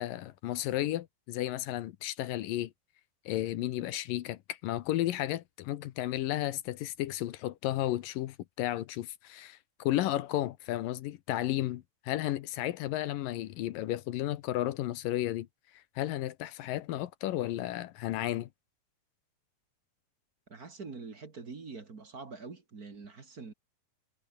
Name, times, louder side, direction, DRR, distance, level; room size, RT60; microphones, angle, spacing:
voice 1, 0.0-2.7 3.3-15.5 16.0-18.5, left 14 dB, 70° left, 2.4 m, -33 dB
voice 2, 20.5-23.5, right 4 dB, 30° right, 2.0 m, -45 dB
omnidirectional pair, 4.5 m